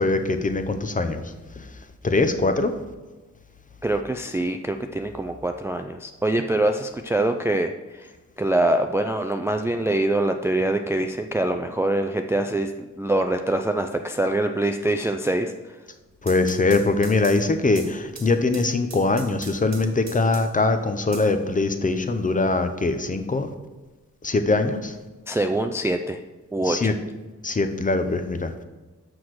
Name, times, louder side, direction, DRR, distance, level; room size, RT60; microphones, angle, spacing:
voice 1, 0.0-1.7 2.0-2.7 16.2-23.5 24.2-25.0 26.6-26.9 27.4-28.6, left 3 dB, 25° left, 8 dB, 0.6 m, -22 dB
voice 2, 3.8-12.7 13.0-15.5 25.3-26.2 26.5-26.9, right 1 dB, 10° right, 6 dB, 0.3 m, -24 dB
sound 1, 16.0-20.7 21.1-22.1, right 4 dB, 60° right, 1.3 m, -43 dB
6.2 x 6.0 x 4.7 m, 1.2 s
cardioid pair, 85°, 30 cm